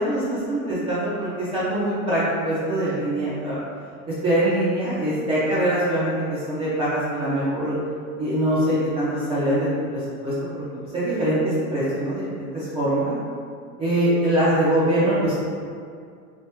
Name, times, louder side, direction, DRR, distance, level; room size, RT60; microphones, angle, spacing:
voice 1, 0.0-3.6 4.2-7.8 8.2-10.6 10.9-13.2 13.8-15.3, right 1 dB, 15° right, -10 dB, 0.4 m, -23 dB
3.4 x 2.6 x 2.8 m, 2.2 s
hypercardioid pair, 130°, 42 cm